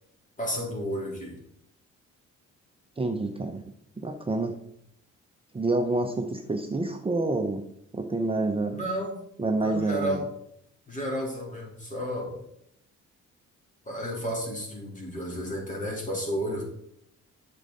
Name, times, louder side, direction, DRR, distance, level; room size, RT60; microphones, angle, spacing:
voice 1, 0.4-1.4 8.7-9.2 9.5-10.2 10.9-12.4 13.9-16.6, equal, 25° left, -1 dB, 3.7 m, -32 dB
voice 2, 3.0-3.6 4.0-4.6 5.5-7.6 7.9-8.8 9.4-10.2, right 2 dB, 20° right, 4 dB, 0.8 m, -28 dB
8.7 x 6.5 x 4.2 m, 0.75 s
cardioid pair, 90°, 30 cm